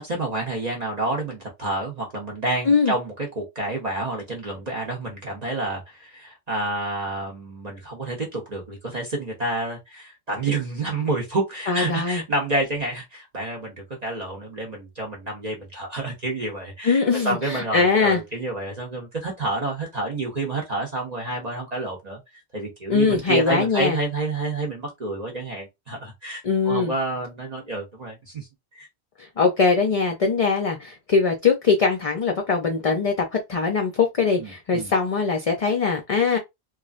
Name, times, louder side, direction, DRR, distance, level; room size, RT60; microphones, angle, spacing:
voice 1, 0.0-22.2 22.5-28.5 28.7-28.9 34.4-34.9, right 2 dB, 45° right, 0.8 m, -29 dB
voice 2, 2.7-3.0 11.7-12.2 16.8-18.2 22.9-24.0 26.4-26.9 29.2-36.4, left 4 dB, 45° left, 0.5 m, -21 dB
3.1 x 2.4 x 2.4 m
omnidirectional pair, 1.1 m